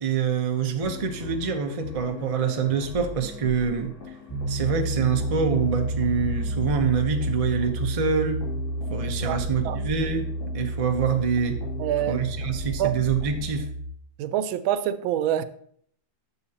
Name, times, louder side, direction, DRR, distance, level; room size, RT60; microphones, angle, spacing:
voice 1, 0.0-3.9 4.5-8.4 8.9-11.6 12.1-13.7, right 6 dB, 55° right, 0.3 m, -26 dB
sound 1, 0.8-13.6, left 3 dB, 85° left, 3.3 m, -39 dB
Piano, 4.3-13.9, right 1 dB, 5° left, 1.9 m, -30 dB
voice 2, 9.2-9.8 11.8-12.2 12.8-13.0 14.2-15.4, right 11 dB, 90° right, 1.4 m, -26 dB
10.5 x 7.0 x 2.8 m
omnidirectional pair, 2.1 m